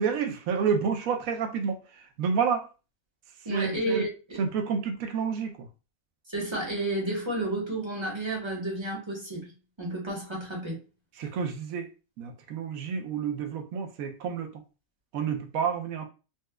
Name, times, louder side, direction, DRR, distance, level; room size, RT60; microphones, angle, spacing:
voice 1, 0.0-2.7 3.5-4.0 4.4-5.7 11.2-11.9 12.2-14.6 15.1-16.0, right 6 dB, 75° right, 1.0 m, -29 dB
voice 2, 3.4-4.4 6.3-9.5 9.8-10.8, right 1 dB, 20° right, 1.0 m, -31 dB
4.0 x 2.3 x 2.2 m
omnidirectional pair, 1.5 m